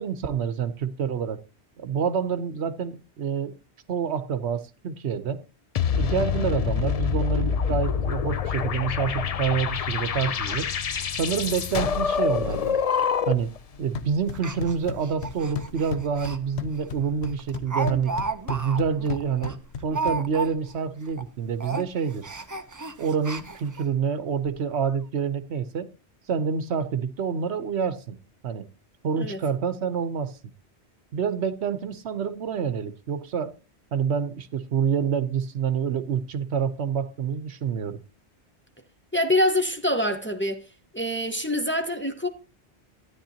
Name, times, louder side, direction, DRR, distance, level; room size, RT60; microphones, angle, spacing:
voice 1, 0.0-1.4 1.8-3.5 3.9-5.4 6.0-10.7 11.1-12.8 13.3-13.5 13.8-18.1 18.5-22.3 23.0-25.9 26.3-28.2 28.4-28.7 29.0-30.3 31.1-33.6 33.9-38.0, right 6 dB, 75° right, 1.0 m, -27 dB
sound 1, 5.7-13.6, left 7 dB, 45° left, 0.5 m, -26 dB
Speech, 9.6-9.7 10.0-10.1 10.5-10.6 10.9-11.0 11.5-11.6 11.9-12.2 12.4-12.6 13.3-13.6 14.3-16.4 16.8-16.9 17.2-20.8 21.1-21.3 21.6-23.9 24.4-24.5 24.8-24.9, right 3 dB, 20° right, 0.6 m, -34 dB
sound 2, 13.7-20.7, left 5 dB, 75° left, 1.1 m, -37 dB
voice 2, 39.1-40.6 40.9-42.3, left 1 dB, 10° left, 1.0 m, -25 dB
13.0 x 9.8 x 2.8 m
omnidirectional pair, 1.1 m